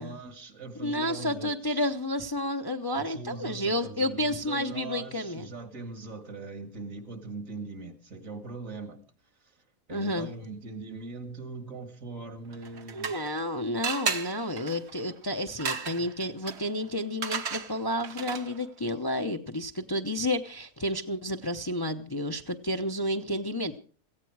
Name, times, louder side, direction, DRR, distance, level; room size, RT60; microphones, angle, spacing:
voice 1, 0.0-2.0 2.9-9.0 9.4-13.1, right 3 dB, 70° right, 2.5 m, -41 dB
voice 2, 0.8-5.5 9.9-10.3 12.9-23.8, left 1 dB, 20° left, 0.7 m, -31 dB
sound 1, 12.5-13.5 13.8-18.7, right 6 dB, 55° right, 1.3 m, -35 dB
17.5 x 15.5 x 4.8 m
omnidirectional pair, 1.4 m